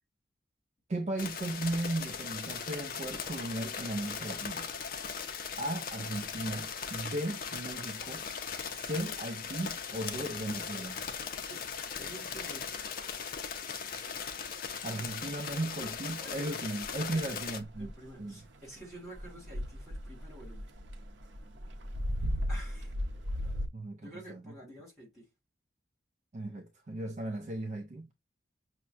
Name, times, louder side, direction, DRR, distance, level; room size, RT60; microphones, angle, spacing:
voice 1, 0.9-4.7 5.6-8.2 8.7-11.0 14.8-17.9 18.2-18.4 23.7-24.5 26.3-28.1, right 1 dB, 40° right, 0.4 m, -36 dB
sound 1, 1.2-17.6, left 6 dB, 50° left, 0.5 m, -39 dB
voice 2, 12.0-12.9 16.2-16.5 17.1-17.3 17.8-20.7 22.5-22.9 24.0-25.3, right 1 dB, ahead, 2.6 m, -49 dB
sound 2, 16.8-23.7, equal, 85° right, 0.6 m, -36 dB
5.7 x 2.1 x 2.4 m
head